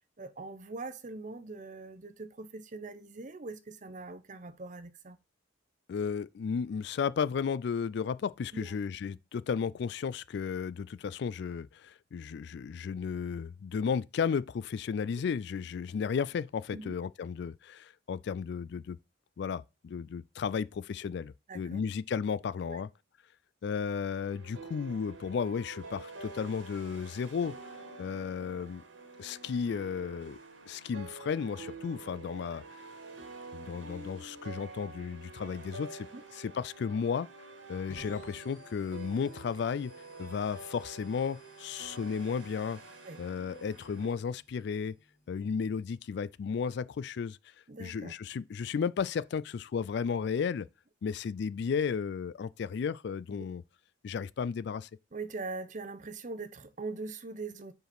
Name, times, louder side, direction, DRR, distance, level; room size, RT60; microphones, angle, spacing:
voice 1, 0.2-5.2 8.5-8.7 16.7-17.0 21.5-21.8 22.7-22.8 36.1-36.2 43.0-43.2 47.7-48.1 55.1-57.7, right 3 dB, 40° right, 0.7 m, -42 dB
voice 2, 5.9-19.0 19.4-22.9 23.6-27.5 28.0-28.8 29.2-30.4 30.7-32.6 33.5-36.1 36.3-37.3 37.7-39.9 40.2-42.8 43.2-44.9 45.3-47.4 47.8-50.7 51.0-53.6 54.0-54.9, left 6 dB, 60° left, 0.3 m, -34 dB
sound 1, 24.1-44.1, right 3 dB, 85° right, 2.0 m, -48 dB
sound 2, 37.9-45.5, left 2 dB, 45° left, 1.9 m, -61 dB
5.1 x 4.9 x 5.9 m
head